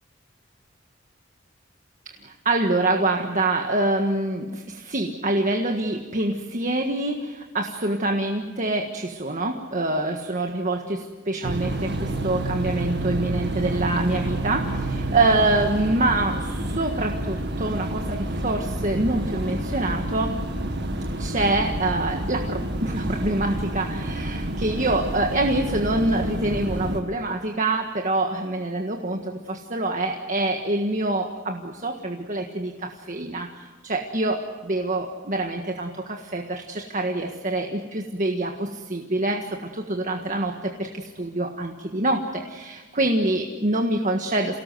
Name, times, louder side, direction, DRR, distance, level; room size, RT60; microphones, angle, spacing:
voice 1, 2.1-20.4 21.2-44.6, right 2 dB, 40° right, 3 dB, 1.6 m, -26 dB
sound 1, 11.4-27.0, right 1 dB, 60° right, 2.0 m, -29 dB
28.0 x 19.0 x 7.9 m, 1.4 s
head